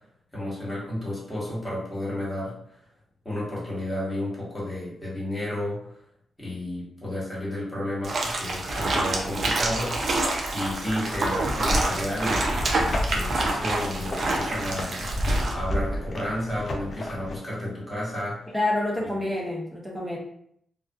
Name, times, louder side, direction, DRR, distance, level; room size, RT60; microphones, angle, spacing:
voice 1, 0.3-2.5 3.2-5.8 6.4-12.4 12.7-15.1 15.5-18.5 19.0-19.3, left 1 dB, 20° left, -6 dB, 1.4 m, -32 dB
sound 1, 8.0-15.5, right 2 dB, 55° right, 0.5 m, -27 dB
sound 2, 11.3-17.4, left 1 dB, 45° left, 0.5 m, -31 dB
voice 2, 18.5-20.2, left 1 dB, ahead, -2 dB, 0.6 m, -27 dB
2.4 x 2.2 x 2.3 m, 0.69 s
cardioid pair, 75°, 0 cm